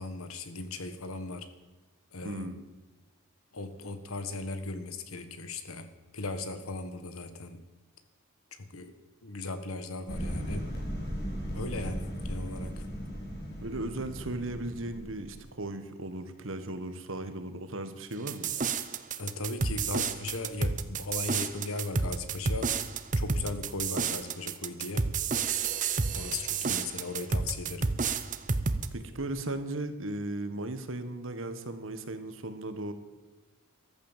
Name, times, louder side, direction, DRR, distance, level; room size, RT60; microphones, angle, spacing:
voice 1, 0.0-1.5 2.1-2.5 3.5-7.6 8.5-8.9 9.2-10.6 11.5-12.8 19.2-22.7 23.2-25.1 26.1-27.9, left 3 dB, 75° left, 10 dB, 1.5 m, -37 dB
voice 2, 2.2-2.6 13.6-18.5 28.9-32.9, right 2 dB, 60° right, 9 dB, 1.5 m, -36 dB
sound 1, 10.1-15.4, equal, 45° left, 5.0 m, -37 dB
sound 2, 18.3-28.9, right 5 dB, 35° right, 0.8 m, -30 dB
14.0 x 11.0 x 7.4 m, 1.2 s
head